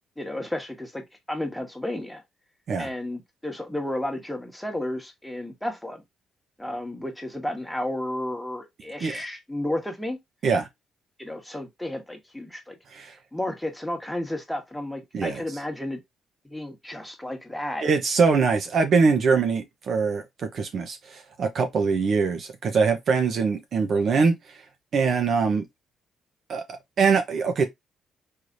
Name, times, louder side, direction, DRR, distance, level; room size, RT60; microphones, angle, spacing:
voice 1, 0.2-2.2 2.8-6.0 6.6-10.2 11.2-12.8 13.3-16.0 16.4-17.8, left 1 dB, 5° left, 1.5 m, -32 dB
voice 2, 17.8-20.2 20.5-24.3 24.9-25.6 26.5-27.7, right 5 dB, 60° right, 1.0 m, -23 dB
4.7 x 3.2 x 2.6 m
cardioid pair, 90°, 0 cm